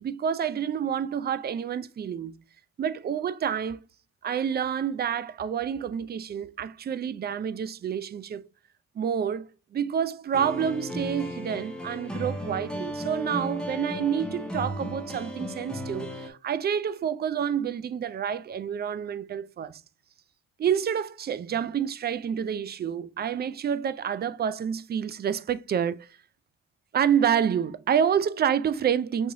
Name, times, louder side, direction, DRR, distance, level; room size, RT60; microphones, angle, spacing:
voice 1, 0.0-2.4 2.8-3.8 4.2-8.4 9.0-9.5 9.7-19.8 20.6-26.1 26.9-29.3, right 8 dB, 35° right, 0.4 m, -28 dB
sound 1, 10.3-16.3, equal, 5° left, 1.2 m, -35 dB
6.3 x 2.9 x 2.7 m
cardioid pair, 90°, 30 cm